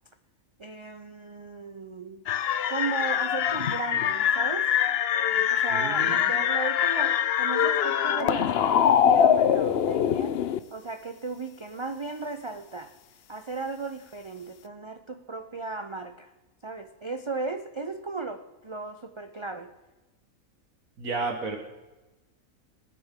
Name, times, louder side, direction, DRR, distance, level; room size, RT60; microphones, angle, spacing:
voice 1, 0.6-2.2 2.7-4.7 5.5-10.4 10.7-12.9 13.3-16.3 16.6-19.7, right 3 dB, 40° right, 7 dB, 0.4 m, -36 dB
sound 1, 2.3-10.6, left 9 dB, 55° left, 0.7 m, -23 dB
voice 2, 5.7-6.3 21.0-21.6, right 3 dB, 75° right, 3 dB, 1.8 m, -32 dB
21.0 x 9.7 x 3.7 m, 1.1 s
omnidirectional pair, 1.5 m